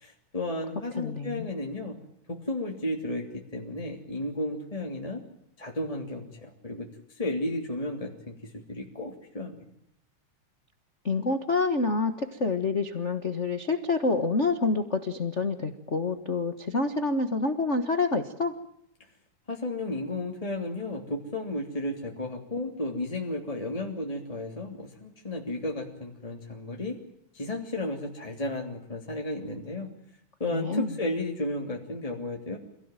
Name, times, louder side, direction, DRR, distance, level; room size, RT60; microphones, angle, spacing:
voice 1, 0.0-2.0 2.3-5.2 5.6-9.6 19.5-27.0 27.3-29.9 30.4-32.6, left 1 dB, 10° left, 1 dB, 2.7 m, -33 dB
voice 2, 1.0-1.5 11.0-18.5 30.5-30.9, left 3 dB, 40° left, 8 dB, 1.0 m, -27 dB
27.0 x 17.0 x 9.1 m, 0.76 s
omnidirectional pair, 3.5 m